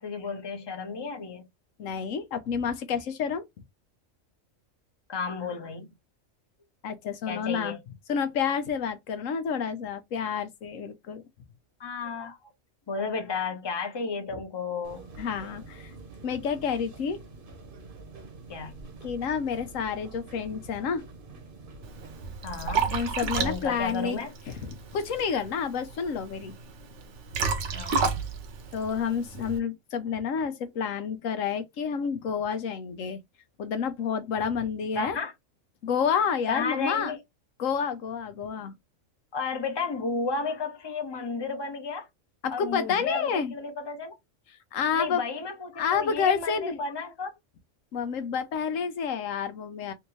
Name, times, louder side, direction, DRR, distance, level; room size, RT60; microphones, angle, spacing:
voice 1, 0.0-1.4 5.1-5.9 7.3-7.8 11.8-12.4 12.9-15.0 18.5-18.7 22.4-23.1 23.4-24.3 27.7-28.2 35.0-35.3 36.5-37.2 39.3-42.1 42.5-44.1 44.9-47.3, left 4 dB, 25° left, 0.8 m, -33 dB
voice 2, 1.8-3.5 6.8-7.8 8.1-11.2 15.2-15.9 16.2-17.2 19.0-21.0 22.9-24.2 24.6-26.5 28.7-33.2 33.6-35.2 35.8-37.1 37.6-38.7 42.4-43.5 44.7-45.2 45.8-46.8 47.9-49.9, left 6 dB, 85° left, 1.1 m, -29 dB
sound 1, 14.8-22.2, right 3 dB, 50° right, 1.0 m, -46 dB
Liquid, 21.8-29.6, right 5 dB, 70° right, 1.1 m, -32 dB
3.4 x 2.8 x 3.0 m
omnidirectional pair, 1.3 m